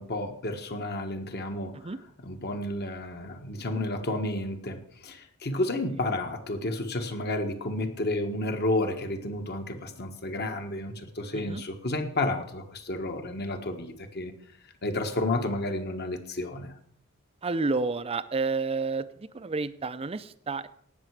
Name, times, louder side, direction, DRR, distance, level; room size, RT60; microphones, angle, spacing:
voice 1, 0.0-1.9 2.2-14.4 14.8-16.7, left 2 dB, 50° left, 6 dB, 1.3 m, -31 dB
voice 2, 17.4-20.7, right 3 dB, 25° right, 14 dB, 0.5 m, -30 dB
18.0 x 6.9 x 4.8 m, 0.68 s
head